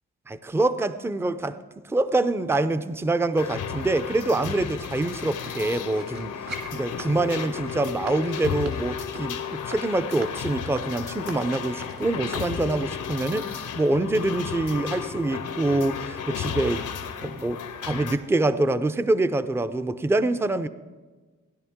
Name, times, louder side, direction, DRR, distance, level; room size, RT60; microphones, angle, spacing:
voice 1, 0.3-1.6 1.8-16.9 17.2-20.7, right 2 dB, 10° right, 12 dB, 0.4 m, -25 dB
sound 1, 3.4-18.1, left 8 dB, 85° left, 1.0 m, -33 dB
sound 2, 5.4-12.6 13.1-13.2, right 2 dB, 60° right, 2.4 m, -42 dB
16.5 x 10.5 x 3.6 m, 1.3 s
cardioid pair, 80°, 30 cm